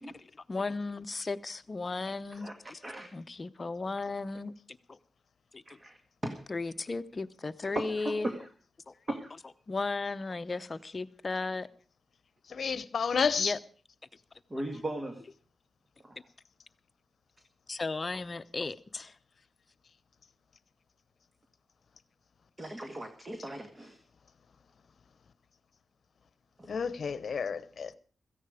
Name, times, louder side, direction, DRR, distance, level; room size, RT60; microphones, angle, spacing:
voice 1, 0.0-2.8 3.1-4.5 4.9-5.0 5.5-5.6 6.5-8.3 8.9-9.0 9.7-11.7 13.4-13.6 17.7-19.1, left 3 dB, 35° left, 0.8 m, -35 dB
voice 2, 5.7-6.4 7.8-8.5 9.1-9.3 14.5-15.2 22.6-24.0 26.6-26.7, right 1 dB, 25° right, 1.8 m, -37 dB
voice 3, 12.5-13.6 26.7-28.0, left 6 dB, 60° left, 0.9 m, -30 dB
16.5 x 14.5 x 5.0 m
wide cardioid pair, 100°, 0 cm